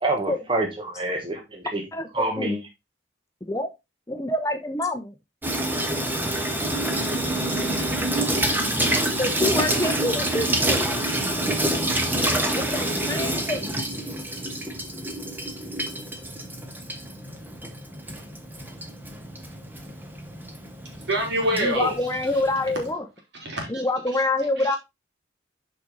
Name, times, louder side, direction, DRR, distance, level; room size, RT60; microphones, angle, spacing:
voice 1, 0.0-1.8 2.1-2.6, right 2 dB, 25° right, 1.2 m, -27 dB
voice 2, 1.9-2.6 3.5-3.7 4.1-5.1 9.2-10.9 12.5-13.6 21.6-23.0 23.7-24.8, left 2 dB, 15° left, 0.7 m, -26 dB
Water tap faucet / Sink (filling or washing), 5.4-22.9, right 1 dB, 10° right, 1.1 m, -27 dB
sound 1, 6.6-14.2, right 2 dB, 85° right, 2.0 m, -37 dB
voice 3, 21.1-22.4 23.4-23.8 24.1-24.2 24.6-24.8, right 1 dB, 65° right, 3.5 m, -27 dB
7.7 x 5.2 x 3.8 m
head